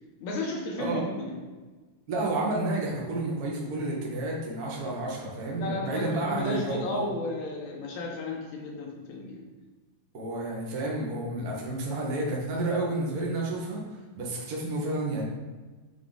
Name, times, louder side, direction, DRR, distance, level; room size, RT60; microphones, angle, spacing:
voice 1, 0.2-1.4 5.5-9.4, left 2 dB, 80° left, 0 dB, 2.4 m, -33 dB
voice 2, 2.1-7.1 10.1-13.8 14.1-15.2, right 2 dB, 55° right, -3 dB, 1.0 m, -30 dB
8.2 x 3.7 x 3.9 m, 1.3 s
omnidirectional pair, 3.4 m